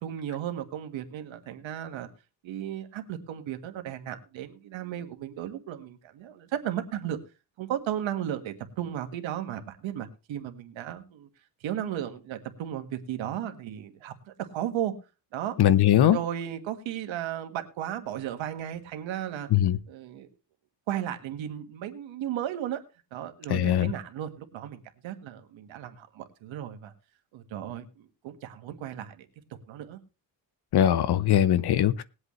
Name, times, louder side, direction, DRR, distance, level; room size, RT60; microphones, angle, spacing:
voice 1, 0.0-2.1 2.4-7.2 7.6-11.3 11.6-14.9 15.3-15.6 16.0-19.5 19.9-20.3 20.9-22.8 23.1-26.9 27.3-29.2 29.5-30.0, right 11 dB, 90° right, 1.7 m, -35 dB
voice 2, 15.6-16.2 19.5-19.8 23.5-23.9 30.7-32.0, left 11 dB, 60° left, 0.9 m, -21 dB
20.0 x 8.1 x 3.2 m
cardioid pair, 115°, 45 cm